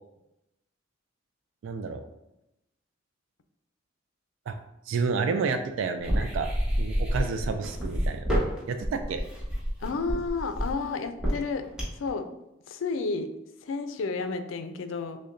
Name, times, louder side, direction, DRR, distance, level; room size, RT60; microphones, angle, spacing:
voice 1, 1.6-2.0 4.5-4.6 4.9-6.5 6.8-8.3 8.7-9.2, right 5 dB, 90° right, 7 dB, 0.3 m, -30 dB
sound 1, 6.0-12.1, equal, 5° right, 1.0 m, -28 dB
voice 2, 9.8-11.6 12.0-12.3 12.7-13.3 13.6-15.2, left 4 dB, 90° left, 8 dB, 0.4 m, -31 dB
6.2 x 2.2 x 2.5 m, 0.89 s
head